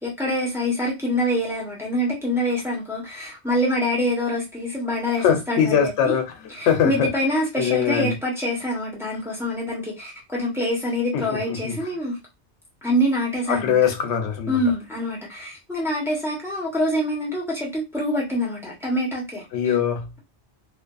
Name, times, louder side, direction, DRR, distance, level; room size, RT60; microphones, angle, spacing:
voice 1, 0.0-6.1 6.6-12.2 12.8-13.8 14.5-19.4, equal, 5° right, 0.8 m, -25 dB
voice 2, 5.2-6.3 6.6-7.1 7.6-8.1 11.1-11.8 13.5-14.6 19.5-20.2, left 8 dB, 90° left, 0.9 m, -22 dB
2.6 x 2.4 x 2.3 m
omnidirectional pair, 1.2 m